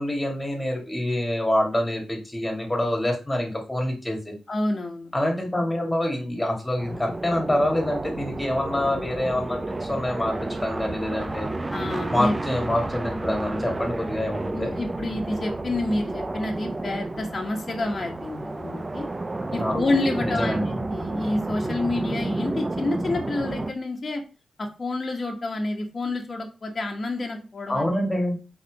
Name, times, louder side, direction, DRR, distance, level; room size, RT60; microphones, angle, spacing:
voice 1, 0.0-4.3 5.1-11.5 12.1-14.7 19.6-19.7 20.2-20.8 27.7-28.4, left 1 dB, 15° left, 1 dB, 2.4 m, -26 dB
voice 2, 4.5-5.1 11.7-12.3 14.5-19.1 19.5-24.2 24.6-28.0, left 2 dB, 40° left, 2 dB, 1.3 m, -28 dB
sound 1, 6.8-23.7, right 2 dB, 25° right, 0.5 m, -31 dB
4.3 x 4.2 x 5.4 m, 0.33 s
cardioid pair, 65°, 0 cm